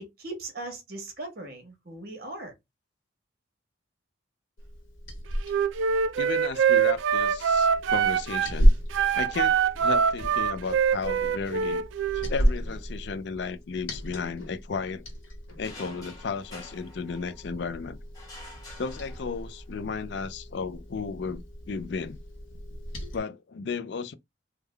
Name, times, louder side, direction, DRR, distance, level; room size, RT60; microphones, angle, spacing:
voice 1, 0.0-2.5, right 2 dB, 50° right, 1.3 m, -39 dB
Liquid, 4.6-23.2, equal, 85° left, 1.1 m, -32 dB
Wind instrument woodwind instrument, 5.4-8.5 8.9-12.3, right 7 dB, 75° right, 0.3 m, -24 dB
voice 2, 6.2-8.7 9.1-11.8 12.1-15.0 15.6-18.0 18.8-22.2 23.1-24.1, left 5 dB, 60° left, 0.4 m, -34 dB
sound 1, 15.6-17.6 18.1-19.7, left 1 dB, 20° left, 1.2 m, -48 dB
3.5 x 2.2 x 3.3 m
head